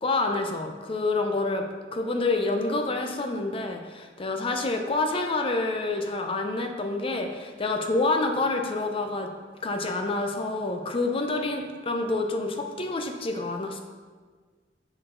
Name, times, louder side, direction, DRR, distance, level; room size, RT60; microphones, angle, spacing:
voice 1, 0.0-1.7 1.9-9.3 9.6-13.8, left 2 dB, 30° left, 4 dB, 0.5 m, -27 dB
5.9 x 4.4 x 3.7 m, 1.5 s
head